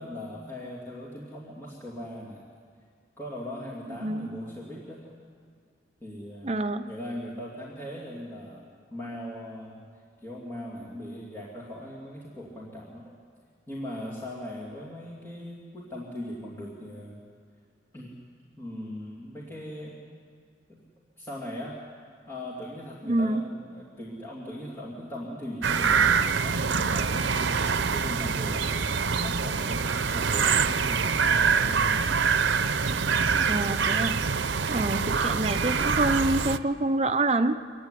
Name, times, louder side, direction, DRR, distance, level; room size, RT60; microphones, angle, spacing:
voice 1, 0.0-2.4 3.2-5.1 6.0-6.5 6.8-9.8 10.2-13.2 13.7-17.2 17.9-18.1 18.6-20.0 20.7-20.8 21.2-21.8 22.3-32.2 34.7-35.1, left 1 dB, 15° left, -6 dB, 2.8 m, -39 dB
voice 2, 4.0-4.4 6.4-6.9 23.1-23.4 33.3-34.2 34.7-37.6, right 2 dB, 35° right, 8 dB, 0.6 m, -26 dB
sound 1, 25.6-36.6, right 5 dB, 80° right, 0.7 m, -25 dB
25.5 x 16.0 x 10.0 m, 2.2 s
head